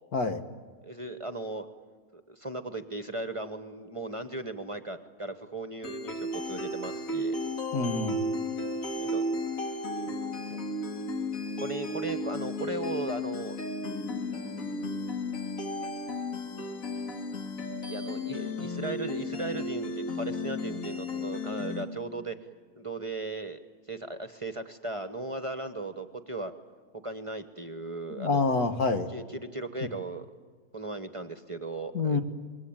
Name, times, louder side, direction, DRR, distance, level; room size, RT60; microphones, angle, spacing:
voice 1, 0.8-1.6 2.1-7.4 9.0-9.2 10.5-10.6 11.6-13.6 17.9-22.4 22.7-23.6 23.9-26.5 27.0-28.4 29.1-30.3 30.7-32.2, right 2 dB, 25° right, 9 dB, 1.0 m, -37 dB
sound 1, 5.8-21.8, left 2 dB, 65° left, 2.7 m, -34 dB
voice 2, 7.7-8.2 28.2-29.1 31.9-32.2, left 4 dB, 85° left, 7 dB, 2.0 m, -27 dB
26.5 x 22.0 x 8.9 m, 1.5 s
omnidirectional pair, 1.5 m